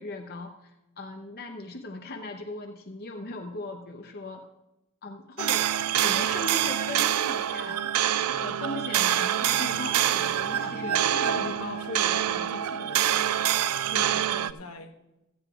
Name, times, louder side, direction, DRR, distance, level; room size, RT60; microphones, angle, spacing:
voice 1, 0.0-4.4 5.0-7.9 8.2-10.9, left 2 dB, 45° left, 3 dB, 0.8 m, -38 dB
sound 1, 5.4-14.5, right 11 dB, 85° right, 0.4 m, -26 dB
voice 2, 10.6-13.4 13.9-15.0, left 3 dB, 75° left, 4 dB, 1.2 m, -40 dB
15.5 x 14.5 x 2.4 m, 0.94 s
head